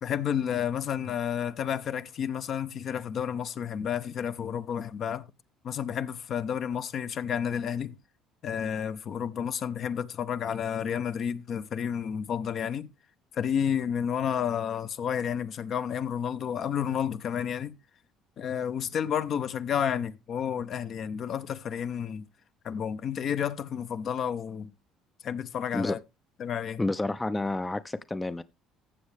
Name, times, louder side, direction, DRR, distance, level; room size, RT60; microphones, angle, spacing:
voice 1, 0.0-5.2 5.6-7.9 8.4-12.9 13.3-17.7 18.4-22.2 22.6-24.7 25.2-26.0 26.4-26.8, left 8 dB, 55° left, 0.8 m, -31 dB
voice 2, 26.8-28.4, left 2 dB, 15° left, 0.5 m, -29 dB
14.5 x 7.2 x 3.4 m
hypercardioid pair, 70°, 0 cm